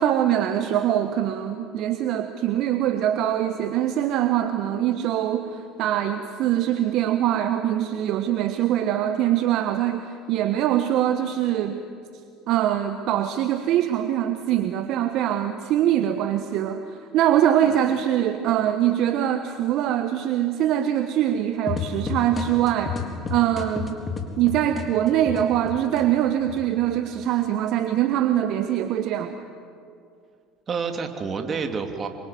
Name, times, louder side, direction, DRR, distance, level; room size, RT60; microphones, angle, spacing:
voice 1, 0.0-11.8 12.5-23.0 23.3-24.0 24.4-29.5, right 11 dB, 55° right, 8 dB, 1.3 m, -23 dB
voice 2, 17.6-18.0 30.7-32.1, right 5 dB, 35° right, 5 dB, 3.0 m, -29 dB
sound 1, 21.7-26.0 26.5-27.2, left 5 dB, 25° left, 4.0 m, -31 dB
27.5 x 24.5 x 7.9 m, 2.3 s
hypercardioid pair, 65°, 0 cm